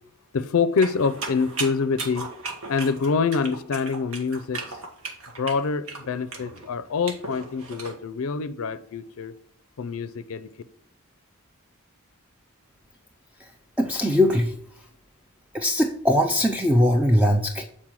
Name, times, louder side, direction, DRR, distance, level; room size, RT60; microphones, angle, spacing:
voice 1, 0.3-2.3 2.7-4.6 5.4-9.3 9.8-10.5, left 5 dB, 65° left, 0.5 m, -26 dB
sound 1, 0.8-7.9, right 3 dB, 70° right, 1.5 m, -36 dB
voice 2, 13.8-14.6 15.5-17.6, left 1 dB, 5° right, 0.5 m, -20 dB
7.4 x 4.3 x 4.7 m
head